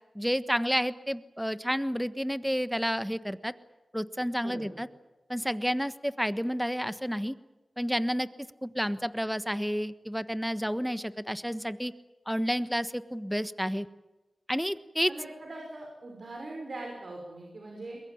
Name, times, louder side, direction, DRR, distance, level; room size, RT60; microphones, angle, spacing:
voice 1, 0.1-3.5 3.9-4.9 5.3-7.3 7.8-8.3 8.6-11.9 12.3-13.9 14.5-15.1, equal, ahead, 13 dB, 1.3 m, -30 dB
voice 2, 15.1-18.0, right 2 dB, 65° right, 1 dB, 5.9 m, -41 dB
22.0 x 21.5 x 8.7 m, 1.1 s
cardioid pair, 45°, 0 cm